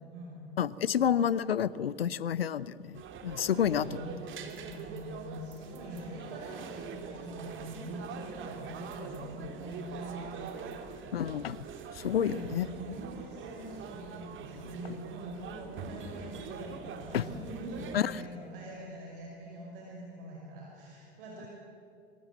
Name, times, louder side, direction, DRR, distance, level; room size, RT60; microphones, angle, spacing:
voice 1, 0.0-0.4 3.4-4.2 4.6-10.9 12.0-21.5, right 1 dB, 65° right, -2 dB, 6.0 m, -44 dB
voice 2, 0.6-3.9 11.1-11.6 11.9-12.7 17.1-17.3 17.9-18.1, left 9 dB, 75° left, 20 dB, 0.7 m, -29 dB
sound 1, 2.9-18.0, right 5 dB, 40° right, 3.0 m, -44 dB
27.0 x 24.5 x 7.7 m, 2.6 s
figure-of-eight pair, 75°, 30 cm